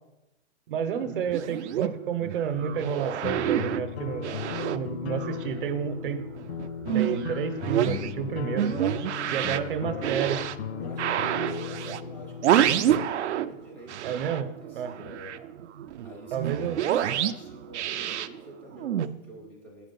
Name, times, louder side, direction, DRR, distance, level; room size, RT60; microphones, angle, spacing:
voice 1, 0.7-4.3 4.7-6.2 6.9-8.9 9.3-10.4 14.0-14.5 14.7-14.9 16.3-16.8, right 8 dB, 50° right, 10 dB, 0.8 m, -30 dB
sound 1, 1.0-5.7 6.0-13.6 13.9-19.1, right 11 dB, 75° right, 0.6 m, -28 dB
sound 2, 2.6-13.1, left 7 dB, 65° left, 0.6 m, -36 dB
voice 2, 4.4-4.8 9.4-10.2 10.8-15.5 16.0-19.9, right 1 dB, 5° left, 0 dB, 0.5 m, -45 dB
8.2 x 5.0 x 5.3 m, 0.94 s
hypercardioid pair, 170°, 35 cm